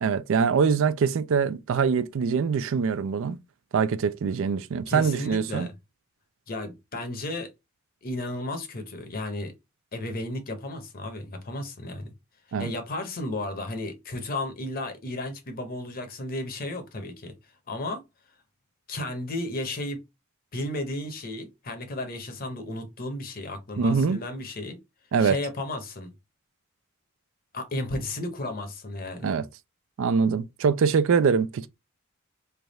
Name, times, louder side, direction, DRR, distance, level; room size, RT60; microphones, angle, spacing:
voice 1, 0.0-3.4 3.7-5.7 12.5-12.7 23.8-24.2 25.1-25.4 29.2-29.4 30.0-31.7, right 5 dB, 65° right, 0.4 m, -23 dB
voice 2, 4.9-5.7 6.5-7.5 8.0-9.5 9.9-12.1 12.6-17.3 17.7-18.0 18.9-20.0 20.5-24.8 25.2-26.1 27.5-29.3, left 1 dB, 45° left, 0.8 m, -33 dB
3.4 x 2.3 x 4.0 m
head